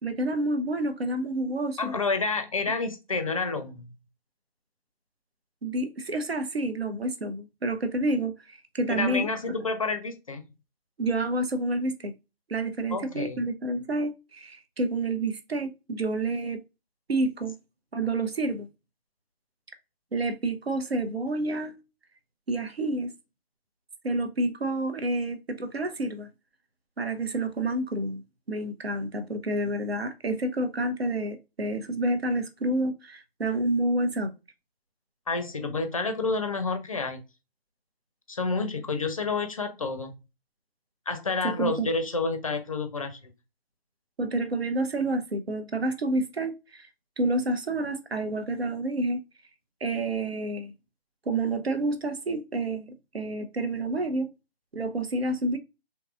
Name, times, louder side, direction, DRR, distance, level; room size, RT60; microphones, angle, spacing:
voice 1, 0.0-1.9 5.6-9.6 11.0-12.1 12.5-16.6 17.1-17.5 17.9-18.7 20.1-21.7 22.5-23.1 24.0-26.3 27.0-28.2 28.5-34.3 41.4-41.9 44.2-46.9 47.2-49.2 49.8-50.7 51.3-54.3 54.7-55.6, right 2 dB, 80° right, 0.7 m, -29 dB
voice 2, 1.8-3.9 8.9-10.4 12.9-13.4 35.3-37.2 38.3-40.1 41.1-43.2, left 3 dB, 35° left, 0.5 m, -29 dB
3.7 x 2.7 x 2.3 m
figure-of-eight pair, 140°, 31 cm